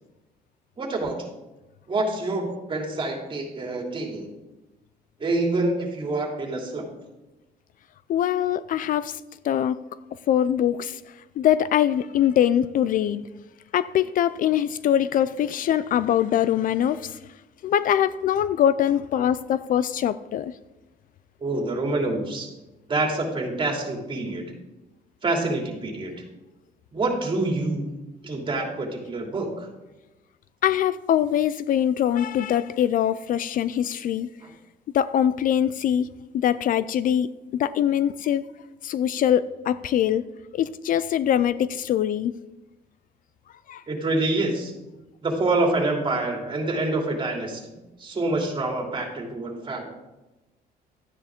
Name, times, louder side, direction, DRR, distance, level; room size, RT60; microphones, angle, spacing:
voice 1, 0.8-1.3 1.9-4.3 5.2-6.9 21.4-22.5 22.9-24.4 25.2-26.1 26.9-27.9 28.2-29.7 34.4-34.5 43.9-44.7 45.2-47.7 48.0-49.8, right 2 dB, 30° right, 1 dB, 2.7 m, -26 dB
voice 2, 8.1-9.9 10.3-11.0 11.4-13.2 13.7-17.2 17.6-20.5 30.6-34.3 34.9-38.4 38.8-40.2 40.5-42.3 43.7-43.8, left 10 dB, 55° left, 16 dB, 0.4 m, -23 dB
12.5 x 9.6 x 3.7 m, 1.0 s
cardioid pair, 110°, 17 cm